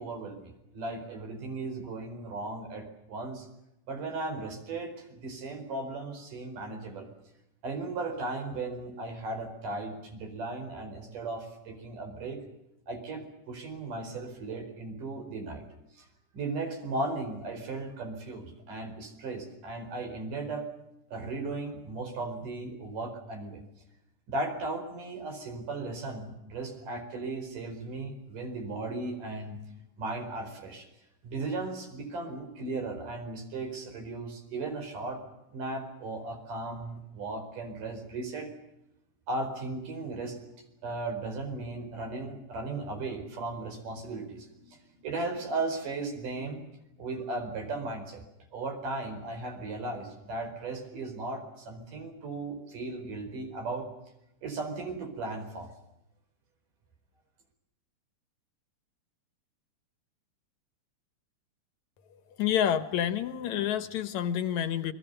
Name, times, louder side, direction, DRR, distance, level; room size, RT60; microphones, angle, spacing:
voice 1, 0.0-3.5 3.9-7.1 7.6-12.4 12.9-15.6 16.0-16.1 16.3-20.6 21.1-23.6 24.3-29.6 30.0-30.9 31.2-35.2 35.5-38.5 39.3-40.4 40.8-46.7 47.0-48.2 48.5-53.9 54.4-55.7, right 3 dB, 80° right, 5 dB, 6.2 m, -36 dB
voice 2, 62.4-64.9, left 9 dB, 70° left, 12 dB, 2.4 m, -28 dB
29.0 x 22.0 x 6.8 m, 0.87 s
omnidirectional pair, 3.7 m